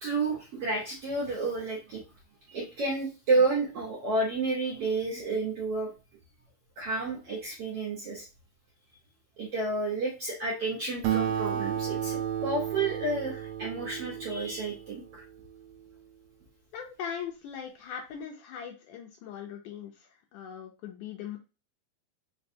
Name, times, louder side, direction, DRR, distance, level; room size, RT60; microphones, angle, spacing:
voice 1, 0.0-2.0 2.5-5.9 6.8-8.2 9.4-15.2, right 3 dB, 60° right, -4 dB, 1.6 m, -30 dB
Acoustic guitar, 11.0-15.9, right 10 dB, 80° right, 2.3 m, -33 dB
voice 2, 16.7-21.4, left 8 dB, 75° left, 1 dB, 2.0 m, -40 dB
5.2 x 3.1 x 2.7 m, 0.31 s
omnidirectional pair, 4.1 m